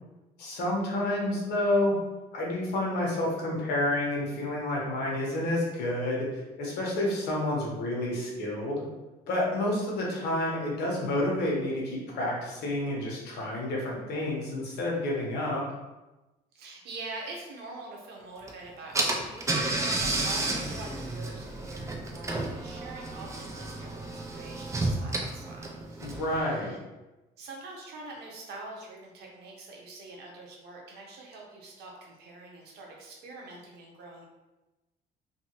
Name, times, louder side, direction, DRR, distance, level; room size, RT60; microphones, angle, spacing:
voice 1, 0.4-1.9 2.3-6.3 6.6-8.8 9.3-15.6 26.0-26.7, left 1 dB, 75° left, -3 dB, 1.0 m, -29 dB
voice 2, 16.5-26.8 27.4-34.2, right 2 dB, 75° right, -1 dB, 0.8 m, -45 dB
Car / Engine, 18.5-18.6 18.9-26.4, right 2 dB, 15° right, 0.4 m, -31 dB
2.7 x 2.7 x 2.9 m, 1.1 s
cardioid pair, 110°, 17 cm